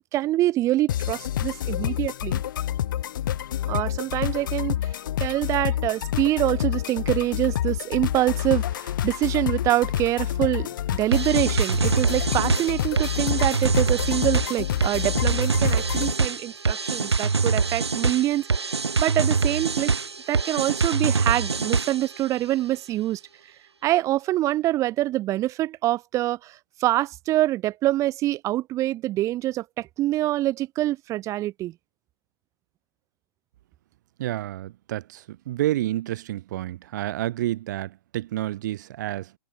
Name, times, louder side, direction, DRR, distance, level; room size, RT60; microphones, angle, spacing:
voice 1, 0.1-2.4 3.7-4.8 5.2-18.5 19.0-19.9 20.3-23.2 23.8-31.7, right 15 dB, 20° right, 2.1 m, -25 dB
sound 1, 0.9-16.1, left 11 dB, 50° left, 4.4 m, -28 dB
sound 2, 11.1-22.2, right 4 dB, 75° right, 5.7 m, -24 dB
voice 2, 34.2-39.3, right 14 dB, 45° right, 1.7 m, -29 dB
figure-of-eight pair, 125°, 14 cm